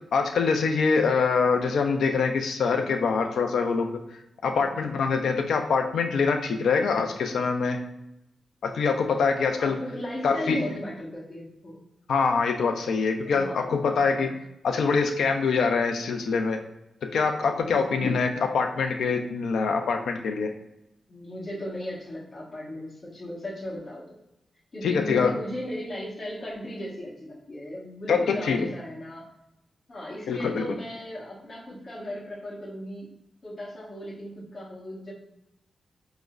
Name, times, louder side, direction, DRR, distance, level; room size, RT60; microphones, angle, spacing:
voice 1, 0.1-3.9 4.4-7.8 8.6-9.8 10.2-10.6 12.1-14.3 14.6-16.6 17.1-18.3 18.5-20.5 24.8-25.3 28.1-28.7 30.3-30.6, left 5 dB, 85° left, 5 dB, 0.3 m, -24 dB
voice 2, 4.6-5.0 9.6-11.8 13.2-13.6 13.9-14.3 17.7-18.1 21.1-24.2 24.7-29.2 29.9-33.1 33.4-35.1, left 1 dB, 55° left, -7 dB, 1.2 m, -37 dB
4.7 x 2.0 x 2.4 m, 0.86 s
cardioid pair, 60°, 0 cm